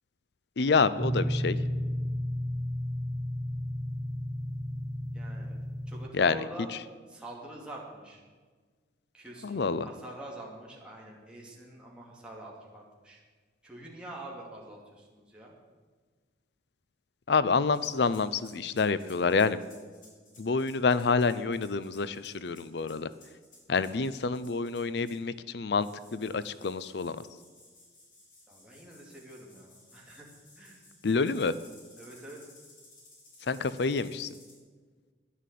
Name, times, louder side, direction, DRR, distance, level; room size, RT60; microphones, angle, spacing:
voice 1, 0.6-1.6 6.1-6.4 9.4-9.9 17.3-19.6 20.4-23.1 23.7-27.3 31.0-31.5 33.5-34.3, left 4 dB, 65° left, 15 dB, 0.5 m, -27 dB
sound 1, 1.0-6.1, equal, 20° right, 0.5 m, -32 dB
voice 2, 5.1-5.6 5.9-6.7 7.1-8.2 9.1-13.2 13.6-15.5 28.5-30.2 30.6-30.8 32.0-32.4, right 1 dB, 5° right, -4 dB, 2.5 m, -46 dB
sound 2, 17.7-25.3 25.8-34.6, left 2 dB, 45° left, 4.6 m, -57 dB
11.5 x 10.5 x 8.3 m, 1.5 s
head